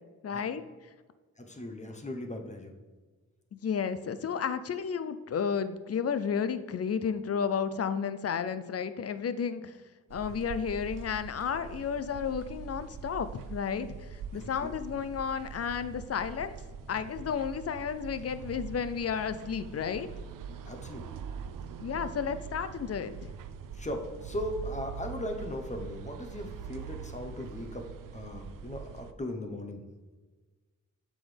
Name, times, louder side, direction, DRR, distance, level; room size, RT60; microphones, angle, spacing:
voice 1, 0.2-0.6 3.5-9.7 10.1-16.5 16.9-20.1 21.8-23.3, left 7 dB, 50° left, 12 dB, 0.5 m, -32 dB
voice 2, 1.4-2.7 14.3-14.7 20.6-21.1 23.7-27.9 28.1-29.8, left 1 dB, 25° left, 4 dB, 0.9 m, -38 dB
sound 1, 10.1-29.1, right 6 dB, 90° right, 0.5 m, -43 dB
7.8 x 6.2 x 3.4 m, 1.3 s
wide cardioid pair, 125°, 31 cm